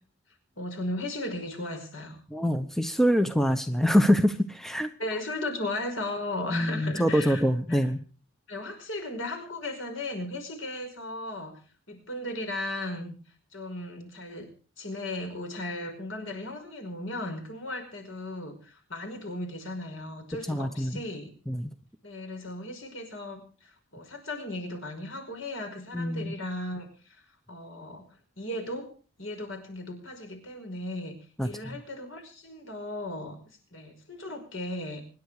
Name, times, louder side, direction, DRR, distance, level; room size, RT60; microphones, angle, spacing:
voice 1, 0.6-2.2 5.0-7.4 7.7-7.8 8.5-11.6 11.9-13.1 13.5-14.5 14.8-21.3 22.0-27.2 27.5-28.1 28.4-28.9 29.2-31.2 31.4-33.4 33.7-35.0, left 1 dB, 65° left, 5 dB, 5.4 m, -36 dB
voice 2, 2.3-4.9 6.5-8.0 20.5-21.0 21.5-21.7 25.9-26.4 31.4-31.8, equal, ahead, 8 dB, 0.8 m, -25 dB
25.0 x 10.5 x 4.9 m, 0.40 s
head